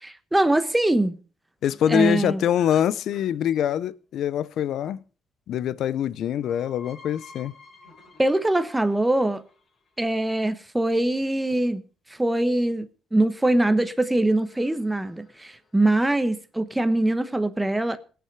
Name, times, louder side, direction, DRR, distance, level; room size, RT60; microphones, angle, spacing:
voice 1, 0.0-1.2 1.9-2.4 8.2-9.4 10.0-11.8 12.1-12.9 13.1-18.0, right 1 dB, 10° right, 0.9 m, -23 dB
voice 2, 1.6-5.0 5.5-7.5, left 10 dB, 75° left, 0.6 m, -24 dB
sound 1, 1.6-3.9 6.1-10.1 13.8-16.0, left 4 dB, 40° left, 4.8 m, -52 dB
19.5 x 6.9 x 4.7 m
cardioid pair, 90°, 0 cm